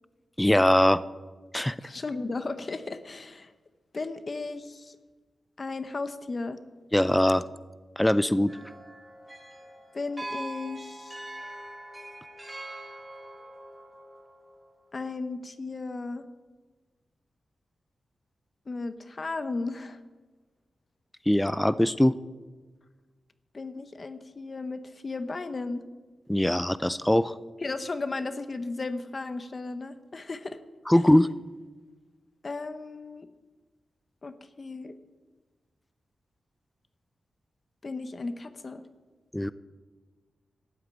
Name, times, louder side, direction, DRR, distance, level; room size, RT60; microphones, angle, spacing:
voice 1, 0.4-1.0 1.5-1.8 6.9-7.5 8.0-8.5 21.3-22.2 26.3-27.4 30.9-31.3 39.3-39.5, left 1 dB, 10° left, 16 dB, 0.5 m, -21 dB
voice 2, 1.8-3.5 3.9-5.0 5.6-6.6 9.9-11.2 14.9-16.3 18.7-20.0 23.5-25.8 27.6-30.6 32.4-33.3 34.2-35.0 37.8-38.9, left 3 dB, 45° left, 11 dB, 1.0 m, -35 dB
sound 1, 8.5-14.7, right 1 dB, 20° right, 4.2 m, -43 dB
13.0 x 7.9 x 8.8 m, 1.3 s
cardioid pair, 60°, 0 cm